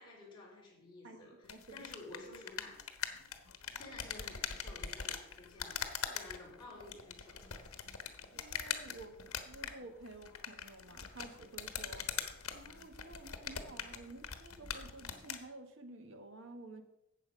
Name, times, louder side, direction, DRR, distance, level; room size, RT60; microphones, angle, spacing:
voice 1, 0.0-2.8 3.8-7.8, left 2 dB, 20° left, -5 dB, 4.0 m, -53 dB
voice 2, 1.0-1.9 8.3-9.2 9.4-12.1 12.5-16.8, right 2 dB, 60° right, 7 dB, 1.3 m, -52 dB
sound 1, 1.4-15.4, left 7 dB, 75° left, 1.2 m, -43 dB
13.0 x 8.2 x 5.3 m, 0.88 s
head